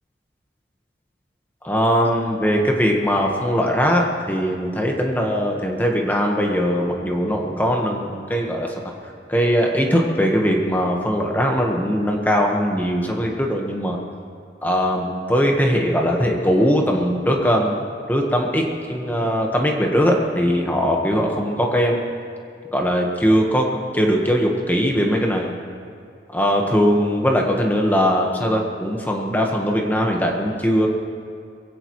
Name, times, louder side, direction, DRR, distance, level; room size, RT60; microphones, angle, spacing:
voice 1, 1.6-8.7 9.0-14.0 14.6-17.8 18.1-22.0 22.7-25.5 26.3-30.9, equal, 10° left, 0 dB, 1.3 m, -20 dB
22.0 x 17.0 x 3.1 m, 2.3 s
head